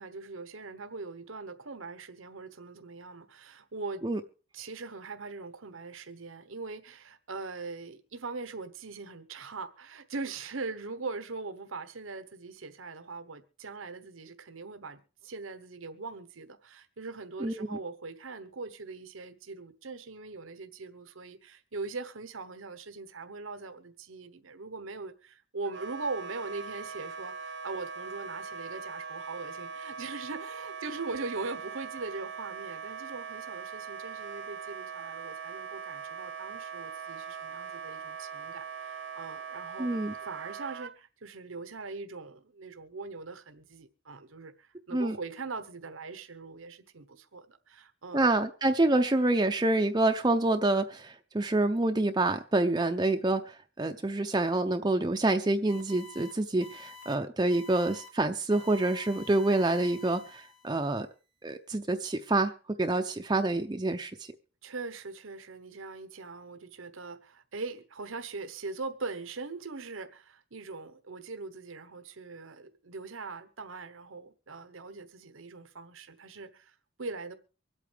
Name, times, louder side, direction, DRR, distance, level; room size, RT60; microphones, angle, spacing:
voice 1, 0.0-4.0 4.5-39.9 40.2-48.2 64.6-77.3, right 3 dB, 90° right, 1.1 m, -41 dB
voice 2, 17.4-17.8 39.8-40.1 44.9-45.2 48.1-61.1 61.4-64.3, right 2 dB, 20° right, 0.5 m, -27 dB
Wind instrument woodwind instrument, 25.6-40.9, right 6 dB, 55° right, 0.7 m, -41 dB
sound 1, 55.7-56.3 56.6-57.1 57.5-58.1 58.5-60.8, left 4 dB, 85° left, 2.9 m, -49 dB
24.5 x 8.5 x 3.4 m
head